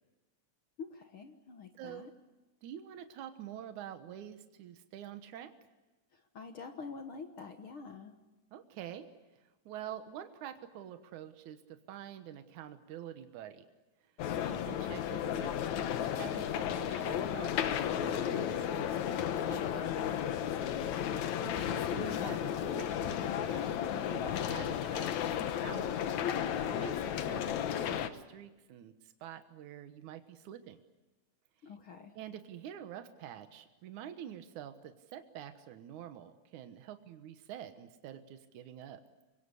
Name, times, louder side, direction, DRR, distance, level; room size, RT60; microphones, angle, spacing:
voice 1, 0.8-2.1 6.1-8.2 15.0-15.3 20.8-21.2 31.6-32.2, left 5 dB, 55° left, 6 dB, 1.9 m, -47 dB
voice 2, 1.8-2.1 2.6-5.5 8.5-9.1 9.3-13.6 14.0-14.1 14.4-20.1 21.4-26.2 26.7-30.8 32.2-39.0, right 10 dB, 80° right, 8 dB, 2.6 m, -47 dB
sound 1, 14.2-28.1, left 9 dB, 70° left, 2.4 m, -33 dB
26.5 x 23.0 x 8.3 m, 1.1 s
omnidirectional pair, 3.5 m